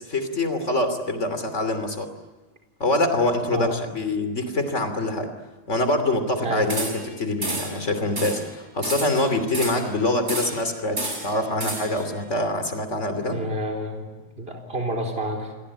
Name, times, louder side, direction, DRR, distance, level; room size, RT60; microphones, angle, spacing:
voice 1, 0.0-2.1 2.8-5.3 5.7-13.4, left 2 dB, 90° left, 8 dB, 3.4 m, -25 dB
sound 1, 6.7-7.1 7.4-7.8 8.2-8.5 8.8-9.9 10.3-10.7 11.0-12.0, right 2 dB, 85° right, 5.0 m, -31 dB
voice 2, 13.2-14.1 14.4-15.5, right 1 dB, 55° right, 1 dB, 4.5 m, -29 dB
29.5 x 22.0 x 8.8 m, 1.2 s
omnidirectional pair, 1.2 m